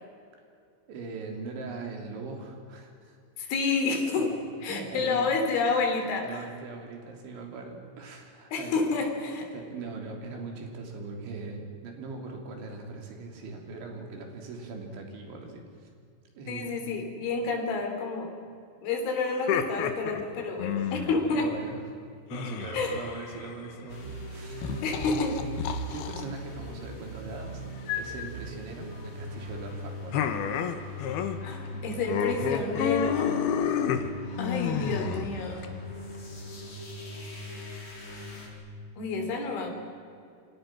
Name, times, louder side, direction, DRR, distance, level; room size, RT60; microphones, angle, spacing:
voice 1, 0.9-3.2 4.1-4.2 4.6-5.3 6.2-8.8 9.5-15.9 16.4-16.9 21.3-21.9 22.3-24.9 25.9-27.6 27.9-30.2, right 3 dB, 75° right, 2 dB, 5.7 m, -40 dB
voice 2, 3.4-4.3 4.6-6.4 8.5-9.5 16.5-18.3 18.8-21.5 22.7-23.0 24.8-25.4 31.4-33.4 34.4-35.7 39.0-39.7, left 4 dB, 85° left, 4 dB, 5.8 m, -29 dB
sound 1, 19.3-21.3 22.3-23.7 24.6-26.2 27.9-28.3 30.1-31.4 31.6-31.8 32.1-35.7, left 8 dB, 65° left, 2.9 m, -30 dB
sound 2, 23.9-38.5, equal, 30° left, 4.6 m, -40 dB
28.0 x 25.0 x 6.2 m, 2.3 s
omnidirectional pair, 5.4 m